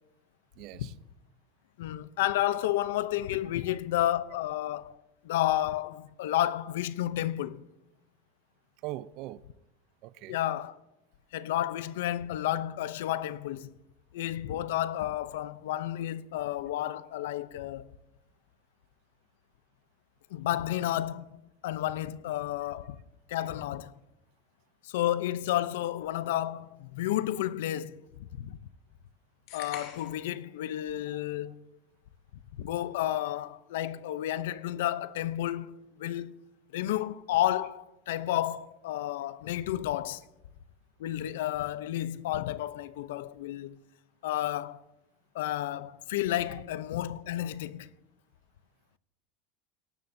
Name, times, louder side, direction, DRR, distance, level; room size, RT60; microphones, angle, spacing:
voice 1, 0.6-0.9 8.8-9.4 10.0-10.4, right 15 dB, 50° right, 0.4 m, -40 dB
voice 2, 1.8-4.9 5.2-7.7 10.3-10.7 11.3-13.7 14.1-17.9 20.3-23.0 23.3-23.9 24.8-28.6 29.5-31.7 32.6-36.3 36.7-40.2 41.0-43.8 44.2-44.8 45.3-47.9, left 13 dB, 85° left, 0.6 m, -31 dB
sound 1, 29.5-30.3, left 8 dB, 60° left, 2.8 m, -43 dB
18.0 x 12.5 x 2.7 m
supercardioid pair, 150°, 0 cm